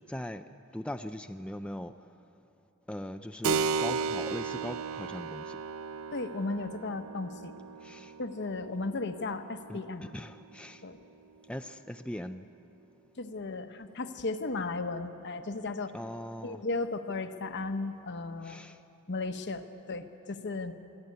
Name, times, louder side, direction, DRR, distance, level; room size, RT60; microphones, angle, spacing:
voice 1, 0.1-0.4 0.7-1.9 2.9-5.6 7.8-8.1 9.7-10.8 11.5-12.5 15.9-16.6 18.4-18.8, left 1 dB, 5° left, 7 dB, 0.4 m, -40 dB
Keyboard (musical), 3.4-11.6, right 5 dB, 75° right, 0.5 m, -36 dB
voice 2, 6.1-7.5 8.2-10.1 10.8-11.0 13.2-15.9 16.4-18.6 19.1-20.7, left 3 dB, 55° left, 8 dB, 1.1 m, -35 dB
23.5 x 15.0 x 9.6 m, 2.7 s
head